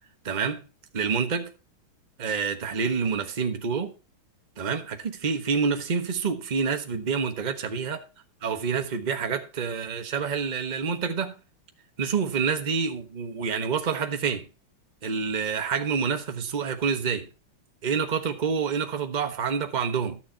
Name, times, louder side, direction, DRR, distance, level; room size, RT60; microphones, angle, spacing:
voice 1, 0.2-0.7 0.9-1.5 2.2-3.9 4.6-8.0 8.4-11.4 12.0-14.5 15.0-17.3 17.8-20.2, right 6 dB, 30° right, 1.0 m, -27 dB
12.5 x 6.7 x 4.5 m
omnidirectional pair, 2.2 m